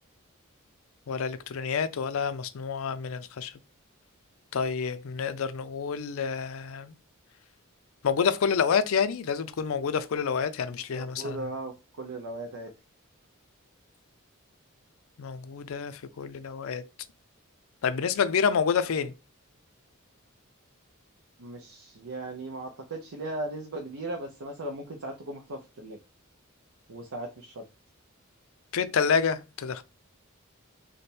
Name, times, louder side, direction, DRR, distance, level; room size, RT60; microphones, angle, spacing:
voice 1, 1.1-3.5 4.5-7.0 8.0-11.4 15.2-16.8 17.8-19.1 28.7-29.8, left 6 dB, 70° left, 0.4 m, -28 dB
voice 2, 10.6-12.7 21.4-26.0 26.9-27.7, right 2 dB, 75° right, 0.6 m, -38 dB
3.2 x 2.1 x 4.2 m
head